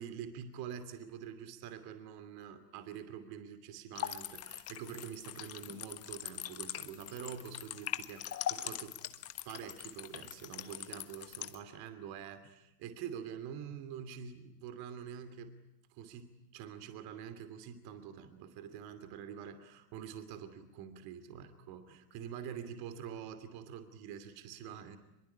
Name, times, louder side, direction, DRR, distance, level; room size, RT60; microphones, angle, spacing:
voice 1, 0.0-9.0 9.4-15.5 15.9-25.0, right 8 dB, 50° right, 11 dB, 2.9 m, -46 dB
sound 1, 3.9-11.6, left 11 dB, 30° left, 1.4 m, -42 dB
24.5 x 22.5 x 10.0 m, 0.87 s
supercardioid pair, 125°, 48 cm